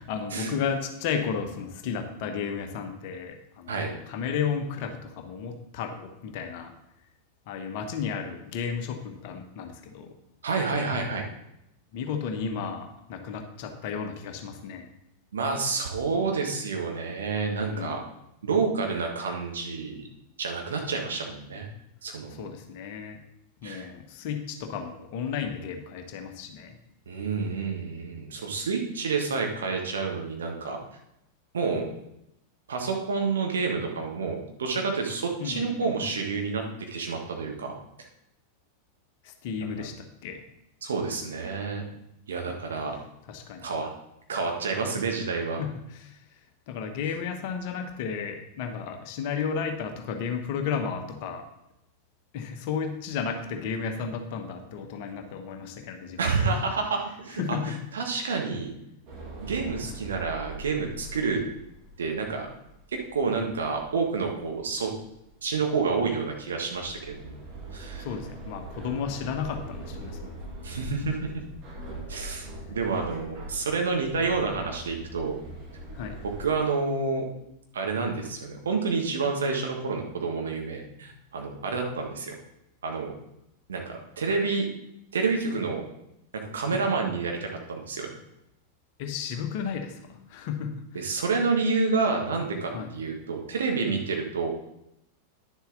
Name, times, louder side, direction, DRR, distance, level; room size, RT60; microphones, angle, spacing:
voice 1, 0.0-6.7 7.5-10.2 11.9-14.9 17.7-18.0 22.3-23.2 23.6-26.8 35.4-35.9 39.2-40.4 42.5-42.6 43.3-43.6 45.6-46.2 46.7-51.5 52.3-56.2 57.3-57.8 68.0-70.3 76.0-76.2 86.7-86.8 89.0-91.0 92.7-92.9, left 6 dB, 50° left, 6 dB, 1.1 m, -33 dB
voice 2, 10.4-11.2 15.3-18.0 18.4-20.0 20.4-21.7 22.0-22.4 23.6-23.9 27.1-30.8 31.5-31.9 32.7-36.6 36.9-37.7 39.8-39.9 40.8-41.8 42.3-42.9 43.6-43.9 44.3-45.6 56.2-58.7 59.4-61.4 62.0-62.5 62.9-64.9 65.4-67.4 67.7-68.1 70.6-71.4 72.1-75.4 76.2-77.2 77.7-82.3 82.8-83.1 83.7-84.7 85.1-85.9 86.3-88.1 90.9-94.5, right 4 dB, 65° right, 2 dB, 1.6 m, -29 dB
sound 1, 59.1-76.4, right 2 dB, 40° right, 2.5 m, -42 dB
10.0 x 7.1 x 3.9 m, 0.84 s
figure-of-eight pair, 90°, 0 cm